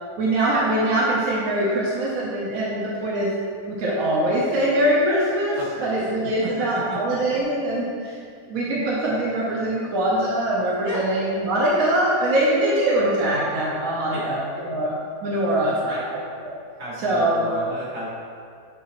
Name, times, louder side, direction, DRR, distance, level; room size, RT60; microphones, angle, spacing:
voice 1, 0.2-3.3 3.7-8.1 8.5-14.9 15.2-16.2 17.0-17.5, right 1 dB, 60° right, -5 dB, 1.2 m, -23 dB
voice 2, 5.6-5.9 10.8-11.0 14.1-14.3 15.6-16.0 16.8-18.1, equal, 75° right, -8 dB, 2.4 m, -33 dB
8.4 x 4.2 x 3.0 m, 2.2 s
omnidirectional pair, 1.7 m